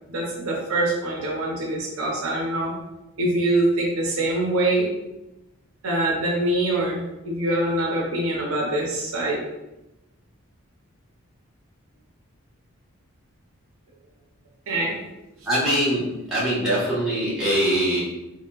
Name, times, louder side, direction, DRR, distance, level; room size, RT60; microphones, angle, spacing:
voice 1, 0.1-2.7 3.2-4.9 5.8-9.4 14.7-15.0, right 1 dB, 70° right, -2 dB, 0.7 m, -24 dB
voice 2, 15.4-18.0, right 1 dB, ahead, -11 dB, 1.0 m, -22 dB
3.2 x 2.8 x 2.3 m, 0.96 s
head